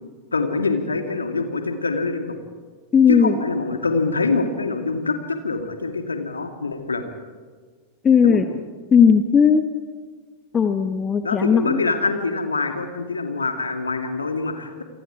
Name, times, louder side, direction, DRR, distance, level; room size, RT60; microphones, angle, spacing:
voice 1, 0.3-2.4 3.1-7.0 8.2-8.4 11.2-14.8, left 3 dB, 75° left, 6 dB, 2.5 m, -25 dB
voice 2, 2.9-3.3 8.0-8.5 8.9-9.7 10.5-11.8, left 6 dB, 20° left, 8 dB, 1.2 m, -16 dB
28.5 x 24.5 x 4.9 m, 1.5 s
figure-of-eight pair, 90°, 0 cm